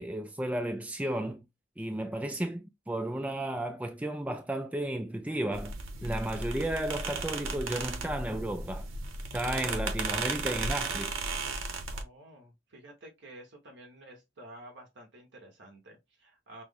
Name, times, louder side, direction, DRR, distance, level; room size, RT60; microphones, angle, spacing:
voice 1, 0.0-1.4 1.8-5.7 6.0-8.9 9.3-11.1, right 1 dB, 5° right, 0.3 m, -33 dB
sound 1, 5.5-12.0, right 3 dB, 80° right, 1.0 m, -35 dB
voice 2, 11.6-16.6, right 1 dB, 60° right, 1.4 m, -51 dB
6.1 x 2.1 x 3.4 m
head